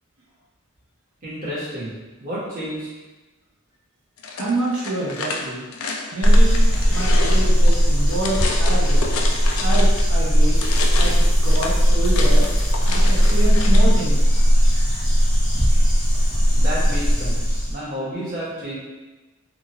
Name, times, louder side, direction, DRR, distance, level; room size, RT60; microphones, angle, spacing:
voice 1, 1.2-2.9 16.1-18.8, equal, 40° right, -8 dB, 1.0 m, -31 dB
sound 1, 4.2-10.1 10.4-13.9, left 3 dB, 80° left, 0.4 m, -30 dB
voice 2, 4.3-5.7 6.1-9.1 9.6-10.6 10.8-12.5 12.9-14.3, right 2 dB, 85° right, -5 dB, 0.8 m, -27 dB
sound 2, 6.2-17.7, equal, 20° left, 0.7 m, -17 dB
2.8 x 2.4 x 2.9 m, 1.2 s
head